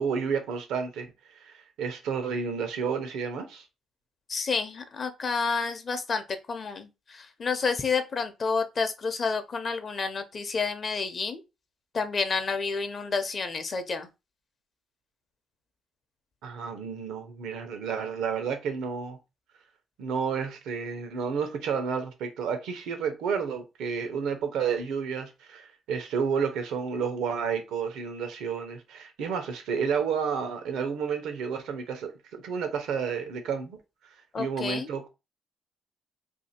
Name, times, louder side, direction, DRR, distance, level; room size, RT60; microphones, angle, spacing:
voice 1, 0.0-3.6 16.4-19.2 20.0-33.8 34.4-35.1, right 6 dB, 85° right, 0.9 m, -31 dB
voice 2, 4.3-11.4 11.9-14.1 34.3-34.9, left 4 dB, 45° left, 0.7 m, -30 dB
2.7 x 2.7 x 4.2 m
cardioid pair, 90°, 0 cm